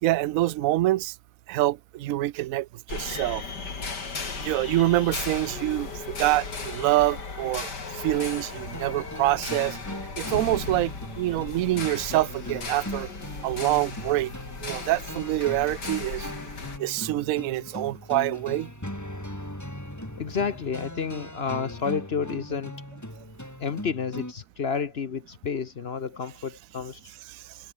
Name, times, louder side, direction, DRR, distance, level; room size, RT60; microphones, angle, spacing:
voice 1, 0.0-1.2 1.5-3.4 4.4-9.8 10.2-13.1 13.4-14.3 14.6-16.3 16.8-18.7 27.3-27.6, right 16 dB, 65° right, 0.9 m, -26 dB
sound 1, 2.9-16.8, left 4 dB, 75° left, 3.8 m, -36 dB
sound 2, 8.6-24.3, left 1 dB, 10° left, 4.6 m, -39 dB
voice 2, 20.2-22.7 23.6-27.1, left 6 dB, 45° left, 0.9 m, -30 dB
omnidirectional pair, 1.8 m